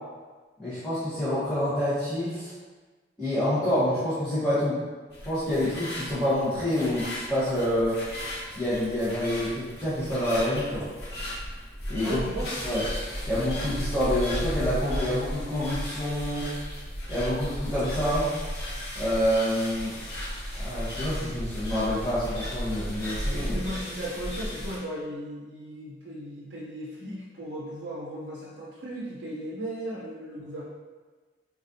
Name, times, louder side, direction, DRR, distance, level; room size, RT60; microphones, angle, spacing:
voice 1, 0.6-2.5 3.2-4.8 5.3-8.0 8.5-10.8 11.9-12.2 12.6-12.8 13.3-16.5 17.1-18.3 18.9-19.9 20.6-23.5, equal, 5° left, -16 dB, 0.9 m, -27 dB
sound 1, 5.1-24.8, equal, 65° left, 0.9 m, -35 dB
voice 2, 12.0-12.6 23.0-30.6, equal, 85° right, -5 dB, 0.6 m, -36 dB
4.0 x 2.3 x 2.6 m, 1.4 s
head